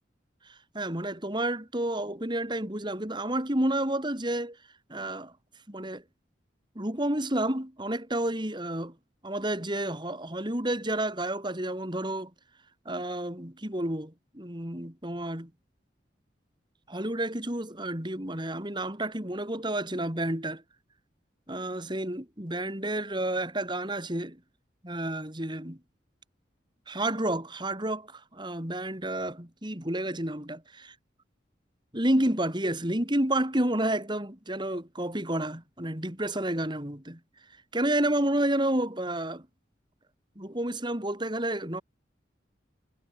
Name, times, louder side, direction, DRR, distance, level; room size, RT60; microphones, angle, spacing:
voice 1, 0.7-4.6 4.9-5.3 5.7-6.0 6.8-8.9 9.2-12.3 12.9-15.5 16.9-20.6 21.5-24.4 24.8-25.8 26.9-30.6 31.9-37.2 37.7-39.5 40.4-41.8, right 1 dB, 25° right, 4.3 m, -30 dB
head